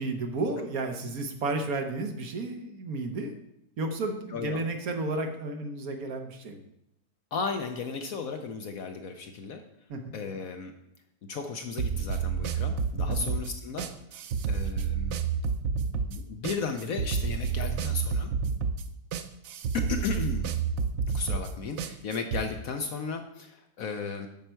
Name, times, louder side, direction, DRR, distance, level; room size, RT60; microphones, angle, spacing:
voice 1, 0.0-3.3 3.8-6.6 9.9-10.1 13.1-13.3, right 2 dB, 60° right, 5 dB, 1.3 m, -32 dB
voice 2, 4.3-4.6 7.3-9.6 10.1-10.7 11.3-13.9 14.5-15.1 16.1-18.3 19.7-20.5 21.1-24.3, left 5 dB, 60° left, 6 dB, 1.0 m, -34 dB
sound 1, 11.8-22.4, right 6 dB, 85° right, 0.6 m, -30 dB
9.0 x 6.3 x 4.5 m, 0.80 s
omnidirectional pair, 1.9 m